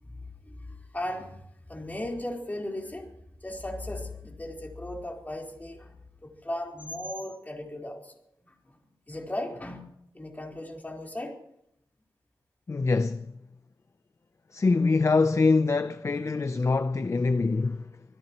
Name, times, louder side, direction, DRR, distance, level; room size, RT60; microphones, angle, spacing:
voice 1, 0.0-3.1 3.4-6.0 6.2-8.1 8.4-8.8 9.1-9.9 10.1-11.4, left 1 dB, 20° left, 4.2 m, -37 dB
voice 2, 12.7-13.3 14.5-18.0, left 3 dB, 35° left, 0.7 m, -24 dB
25.5 x 17.0 x 3.1 m
wide cardioid pair, 95°, 8 cm